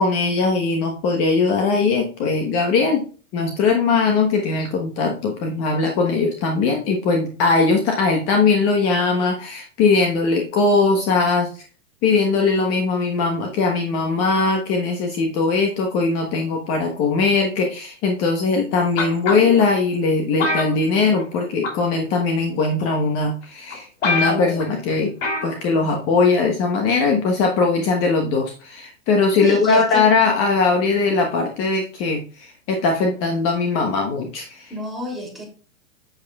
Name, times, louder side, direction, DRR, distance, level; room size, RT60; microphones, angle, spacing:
voice 1, 0.0-3.0 3.3-11.5 12.0-25.1 25.4-34.7, left 4 dB, 35° left, 1.2 m, -20 dB
sound 1, 19.0-19.6 20.4-21.4 21.6-21.9 22.8-22.9 23.4-23.5 23.7-23.8 24.0-24.7 25.2-25.5 25.8-25.9, left 3 dB, 75° left, 3.1 m, -24 dB
voice 2, 29.4-30.1 34.7-35.4, equal, ahead, 3.0 m, -29 dB
8.1 x 7.5 x 2.3 m
hypercardioid pair, 125°, 39 cm